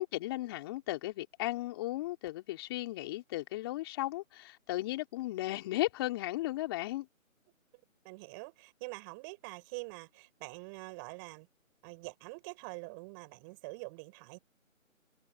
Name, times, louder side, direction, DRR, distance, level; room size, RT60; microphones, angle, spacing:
voice 1, 0.0-7.1, left 16 dB, 20° left, 3.5 m, -35 dB
voice 2, 8.0-11.5 11.8-14.4, right 31 dB, 15° right, 7.8 m, -45 dB
figure-of-eight pair, 160°, 41 cm